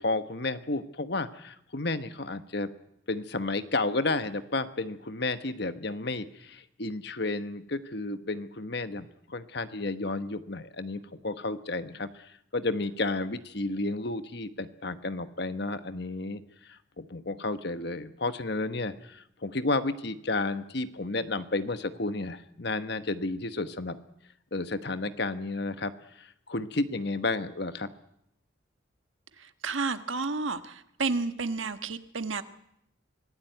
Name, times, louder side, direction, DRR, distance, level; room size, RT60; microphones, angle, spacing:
voice 1, 0.0-2.7 3.1-24.0 24.5-27.9, left 2 dB, 55° left, 11 dB, 1.2 m, -32 dB
voice 2, 29.4-32.4, right 4 dB, 75° right, 10 dB, 1.4 m, -31 dB
25.0 x 16.5 x 9.2 m, 0.77 s
head